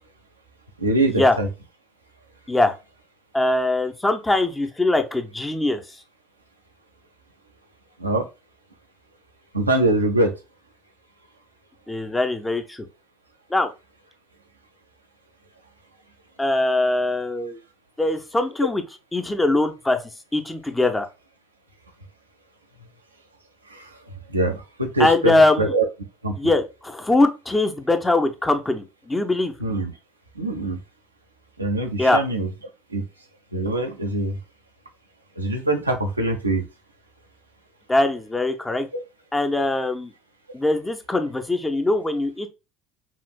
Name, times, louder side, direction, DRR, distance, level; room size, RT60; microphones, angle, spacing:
voice 1, 0.8-1.5 8.0-8.2 9.5-10.3 23.7-24.0 24.3-25.9 26.2-26.3 29.6-29.9 30.4-30.8 31.6-32.5 32.9-33.0 33.5-34.4 35.4-36.6 38.9-39.0, right 2 dB, 85° right, 0.6 m, -23 dB
voice 2, 3.3-5.8 11.9-12.9 13.5-13.7 16.4-17.6 18.0-18.8 19.1-20.0 20.3-21.1 25.0-25.7 26.4-29.5 32.0-32.2 37.9-38.9 39.3-40.1 40.5-42.5, left 2 dB, 10° left, 0.6 m, -21 dB
5.7 x 2.5 x 2.2 m
figure-of-eight pair, 65°, 0 cm